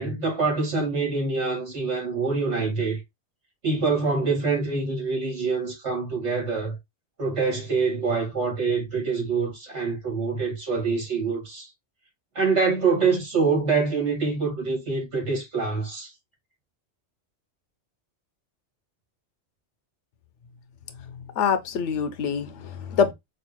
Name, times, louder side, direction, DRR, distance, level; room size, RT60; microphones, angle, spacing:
voice 1, 0.0-3.0 3.6-6.8 7.2-11.7 12.4-16.1, right 4 dB, 90° right, 2.4 m, -25 dB
voice 2, 21.4-23.1, left 7 dB, 80° left, 1.0 m, -25 dB
5.4 x 2.4 x 2.9 m
omnidirectional pair, 1.2 m